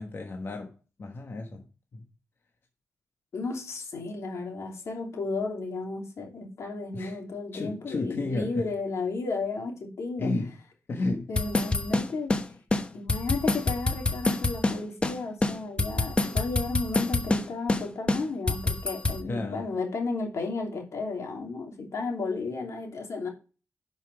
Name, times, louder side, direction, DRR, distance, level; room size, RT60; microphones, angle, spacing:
voice 1, 0.0-1.6 1.9-2.0 6.9-7.2 7.5-8.7 10.2-10.6 10.9-11.3 11.9-12.1 19.2-19.7, left 2 dB, 50° left, 1.3 m, -32 dB
voice 2, 3.3-10.3 11.3-12.3 12.9-23.3, left 3 dB, 85° left, 3.0 m, -33 dB
sound 1, 11.4-12.4 12.7-12.8 13.1-14.8 15.0-15.1 15.4-17.4 17.7-17.8 18.1-19.2, left 2 dB, 20° left, 0.9 m, -26 dB
11.0 x 5.6 x 4.8 m
wide cardioid pair, 170°, 5 cm